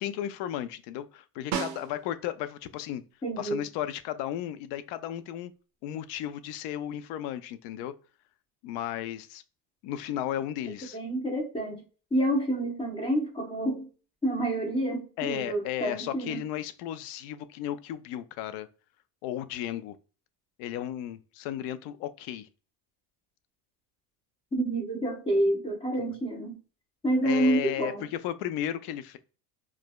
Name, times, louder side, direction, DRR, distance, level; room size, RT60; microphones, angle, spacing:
voice 1, 0.0-3.0 3.4-5.5 5.8-7.9 8.6-9.4 9.8-11.0 15.2-18.7 19.2-19.9 20.6-22.5 26.0-26.1 27.2-29.2, left 11 dB, 60° left, 0.5 m, -34 dB
Snare drum, 1.5-2.4 6.9-7.0, right 7 dB, 35° right, 0.5 m, -34 dB
voice 2, 3.2-3.6 10.9-11.8 12.1-13.9 14.2-16.4 24.5-26.5 27.0-28.1, right 1 dB, 10° left, 0.5 m, -28 dB
4.7 x 2.2 x 2.2 m
cardioid pair, 150°, 47 cm